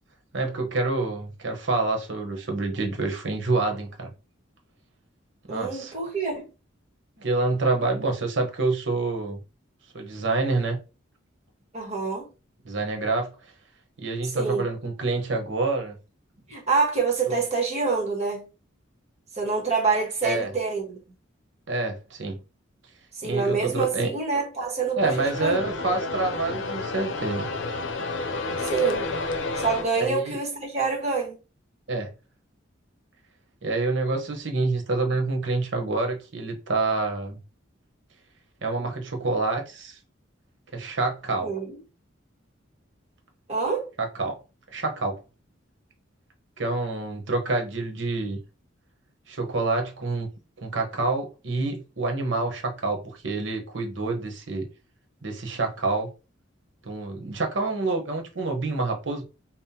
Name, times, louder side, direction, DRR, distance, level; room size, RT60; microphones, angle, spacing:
voice 1, 0.3-4.1 5.5-5.9 7.2-9.4 9.9-10.8 12.6-13.3 14.0-15.9 17.3-17.4 20.2-20.5 21.7-22.4 23.2-24.1 25.0-27.5 30.0-30.4 31.9-32.1 33.6-37.4 38.6-40.0 40.7-41.5 44.0-44.4 44.7-45.1 46.6-48.4 49.3-50.3 50.6-54.7 55.2-56.1 56.9-59.2, right 3 dB, 70° right, 1.0 m, -27 dB
voice 2, 5.5-6.5 11.7-12.3 14.3-14.7 16.5-18.5 19.3-21.0 23.2-25.7 28.6-29.1 29.6-31.4 41.4-41.8 43.5-43.9, right 4 dB, 35° right, 1.3 m, -26 dB
sound 1, 25.0-29.8, left 3 dB, 85° left, 0.6 m, -30 dB
5.5 x 2.1 x 2.8 m
head